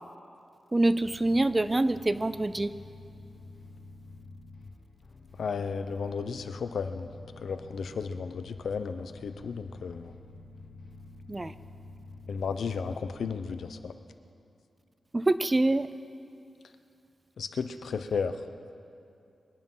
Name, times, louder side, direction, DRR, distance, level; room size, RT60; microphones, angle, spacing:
voice 1, 0.7-2.7 11.3-11.5 15.1-15.9, right 2 dB, 20° right, 14 dB, 0.4 m, -25 dB
sound 1, 0.8-13.3, left 3 dB, 55° left, 1.4 m, -49 dB
voice 2, 5.4-7.1 7.4-10.1 12.3-13.9 17.4-18.3, left 5 dB, 80° left, 9 dB, 0.8 m, -34 dB
25.5 x 9.9 x 5.6 m, 2.6 s
wide cardioid pair, 140°, 0 cm